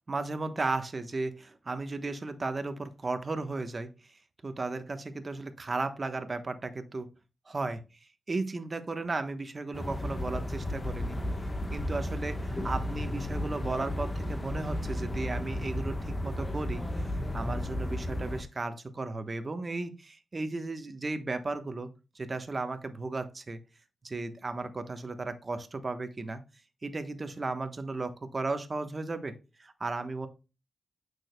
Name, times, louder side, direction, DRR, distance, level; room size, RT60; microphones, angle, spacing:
voice 1, 0.1-4.1 4.4-7.1 7.5-7.8 8.3-11.2 11.7-21.9 22.1-23.6 24.0-26.4 26.8-30.3, right 3 dB, 35° right, 9 dB, 1.1 m, -35 dB
sound 1, 9.7-18.4, left 1 dB, 20° left, 1.2 m, -33 dB
8.9 x 6.3 x 2.2 m, 0.30 s
cardioid pair, 70°, 0 cm